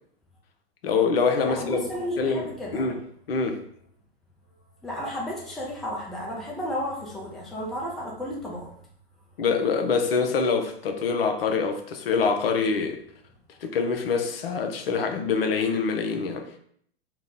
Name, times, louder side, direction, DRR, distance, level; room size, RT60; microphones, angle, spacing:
voice 1, 0.8-1.8 2.2-3.0 3.3-3.6 9.4-13.0 13.6-16.5, left 5 dB, 60° left, 0.6 m, -25 dB
voice 2, 1.5-2.9 4.8-8.7, equal, ahead, 0.3 m, -33 dB
2.9 x 2.0 x 3.8 m
figure-of-eight pair, 100°, 32 cm